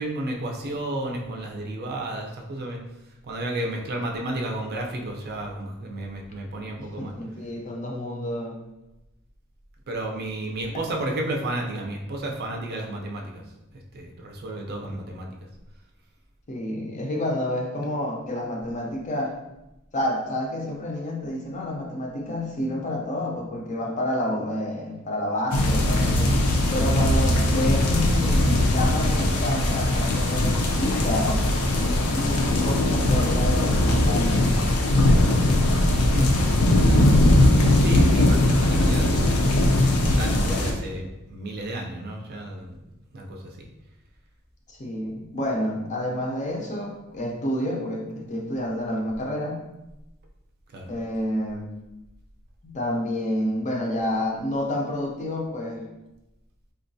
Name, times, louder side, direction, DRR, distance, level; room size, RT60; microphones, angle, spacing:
voice 1, 0.0-2.8 3.2-7.1 9.9-13.4 13.9-15.3 35.1-35.4 36.1-36.3 36.7-39.2 40.0-42.8 43.1-43.7 50.7-50.9, right 1 dB, 45° right, 0 dB, 0.5 m, -32 dB
voice 2, 6.8-8.6 16.5-19.4 19.9-26.4 26.7-31.4 32.1-34.5 44.7-49.6 50.9-51.7 52.6-55.8, left 1 dB, 35° left, 0 dB, 0.5 m, -29 dB
sound 1, 25.5-40.7, left 1 dB, 85° left, 0.5 m, -20 dB
3.7 x 2.2 x 2.6 m, 0.96 s
head